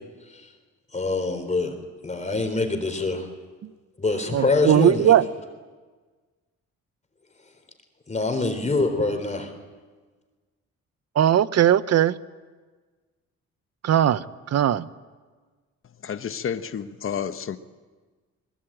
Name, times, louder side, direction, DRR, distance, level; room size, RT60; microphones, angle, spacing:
voice 1, 0.9-1.7 2.0-3.3 4.0-5.1 8.1-9.5, left 3 dB, 25° left, 5 dB, 3.9 m, -25 dB
voice 2, 4.3-5.2 11.2-12.1 13.8-14.2 14.5-14.9, right 10 dB, 55° right, 16 dB, 0.9 m, -18 dB
voice 3, 16.0-17.6, left 7 dB, 45° left, 11 dB, 1.2 m, -30 dB
23.5 x 20.5 x 9.0 m, 1.4 s
cardioid pair, 90°, 30 cm